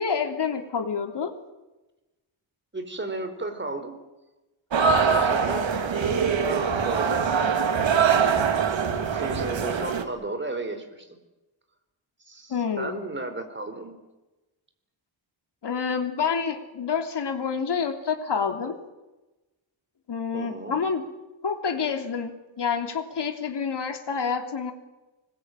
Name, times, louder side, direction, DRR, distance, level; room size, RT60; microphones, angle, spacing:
voice 1, 0.0-1.3 12.5-13.0 15.6-18.8 20.1-21.0 21.4-24.7, left 6 dB, 55° left, 5 dB, 3.4 m, -28 dB
voice 2, 2.7-4.0 4.9-7.3 8.7-11.1 12.3-14.0 20.3-20.8, right 2 dB, 25° right, 7 dB, 4.1 m, -34 dB
sound 1, 4.7-10.0, right 6 dB, 65° right, 2.7 m, -23 dB
25.0 x 21.0 x 9.1 m, 1.1 s
wide cardioid pair, 140°, 49 cm